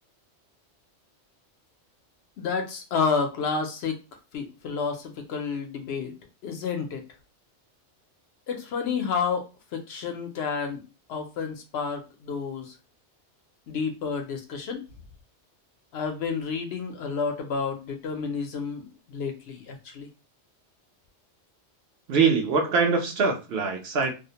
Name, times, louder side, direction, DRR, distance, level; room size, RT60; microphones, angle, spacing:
voice 1, 2.4-4.0 4.3-6.1 6.4-7.0 8.5-9.5 9.7-10.8 11.1-12.7 13.7-14.8 15.9-20.1, left 5 dB, 70° left, 0.8 m, -30 dB
voice 2, 22.1-24.1, right 5 dB, 65° right, 0.8 m, -23 dB
2.4 x 2.0 x 2.7 m
omnidirectional pair, 1.2 m